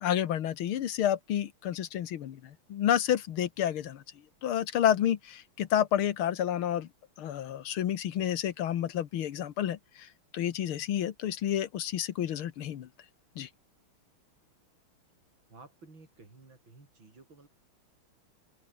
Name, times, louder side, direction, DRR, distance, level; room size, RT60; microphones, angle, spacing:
voice 1, 0.0-4.0 4.4-6.9 7.2-12.9 13.4-13.5, left 10 dB, 80° left, 2.0 m, -30 dB
voice 2, 15.5-17.5, right 3 dB, 65° right, 6.3 m, -54 dB
open air
omnidirectional pair, 2.3 m